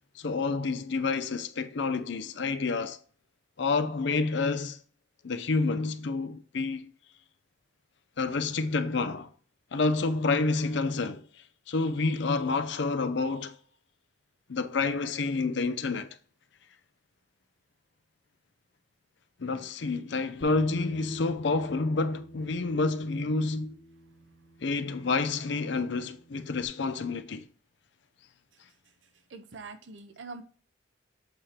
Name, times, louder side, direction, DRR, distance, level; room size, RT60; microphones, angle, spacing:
voice 1, 0.2-3.0 3.6-4.8 5.2-6.9 8.2-9.3 9.7-11.2 11.7-13.6 14.5-16.1 19.4-23.8 24.6-27.4, left 3 dB, 65° left, 0.5 m, -29 dB
Bass guitar, 20.4-26.7, equal, 50° left, 1.6 m, -48 dB
voice 2, 29.3-30.4, right 4 dB, 70° right, 0.8 m, -43 dB
7.8 x 2.9 x 4.9 m
head